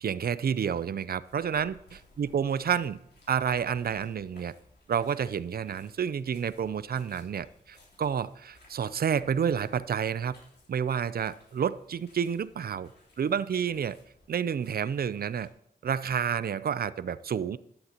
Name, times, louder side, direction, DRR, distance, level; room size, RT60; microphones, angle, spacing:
voice 1, 0.0-3.0 3.3-4.5 4.9-10.4 10.7-12.9 13.2-14.0 14.3-15.5 15.8-17.6, right 7 dB, 65° right, 17 dB, 0.5 m, -29 dB
sound 1, 1.2-15.5, left 1 dB, 75° left, 3.5 m, -60 dB
13.0 x 11.0 x 2.9 m, 0.75 s
supercardioid pair, 40°, 17 cm